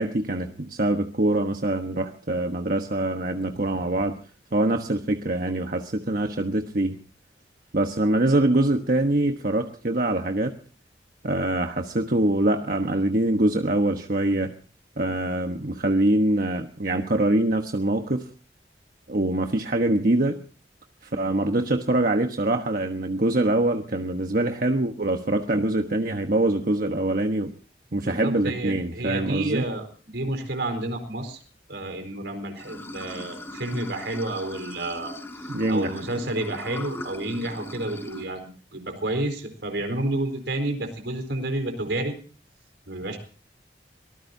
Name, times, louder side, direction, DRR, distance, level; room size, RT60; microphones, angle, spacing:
voice 1, 0.0-4.2 4.5-7.0 7.7-10.6 11.2-14.5 15.0-18.3 19.1-20.4 21.0-27.5 27.9-29.6 35.5-36.0, right 1 dB, 55° right, 5 dB, 1.2 m, -24 dB
voice 2, 28.0-31.4 31.7-42.1 42.9-43.2, right 1 dB, 85° right, 4 dB, 4.5 m, -30 dB
Water / Sink (filling or washing), 32.6-38.2, left 1 dB, 15° left, 4.6 m, -39 dB
25.0 x 19.5 x 2.7 m, 0.39 s
head